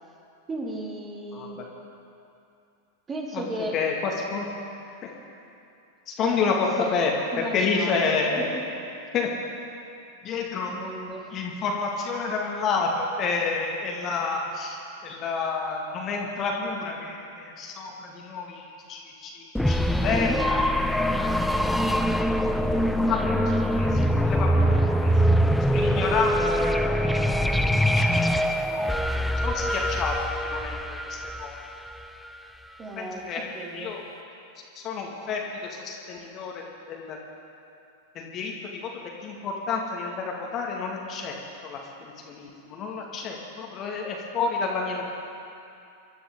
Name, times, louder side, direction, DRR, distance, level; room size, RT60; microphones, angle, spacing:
voice 1, 0.5-1.6 3.1-3.8 6.2-6.4 6.8-6.9 7.3-8.6 10.3-10.4 10.7-11.3 24.5-25.4 26.0-26.2 32.8-34.0, right 1 dB, 20° right, -1 dB, 2.6 m, -35 dB
voice 2, 3.7-4.5 5.0-5.1 6.1-8.5 9.1-9.3 10.2-10.8 11.3-14.8 15.0-20.6 21.0-21.6 23.1-25.1 25.7-27.3 27.9-28.3 28.6-28.8 29.4-30.2 30.4-31.6 33.0-33.4 33.7-34.1 34.8-37.2 38.2-38.9 39.2-41.3 41.6-45.0, left 4 dB, 30° left, -1 dB, 2.1 m, -29 dB
sound 1, 19.5-32.3, equal, ahead, 0.6 m, -23 dB
25.0 x 12.5 x 3.9 m, 2.6 s
figure-of-eight pair, 90°, 0 cm